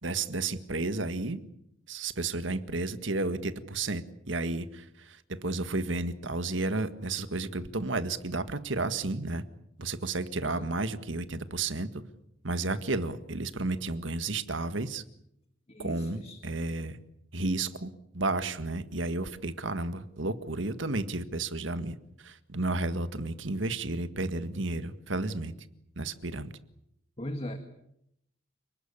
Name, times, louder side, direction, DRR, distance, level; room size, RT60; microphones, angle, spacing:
voice 1, 0.0-1.4 1.9-9.4 9.8-12.0 12.4-15.0 15.8-17.0 17.3-25.5 26.0-26.5, right 2 dB, 80° right, 11 dB, 1.8 m, -32 dB
voice 2, 15.7-16.4 27.2-27.6, left 1 dB, 30° left, 7 dB, 1.9 m, -39 dB
29.5 x 20.0 x 8.5 m, 0.77 s
head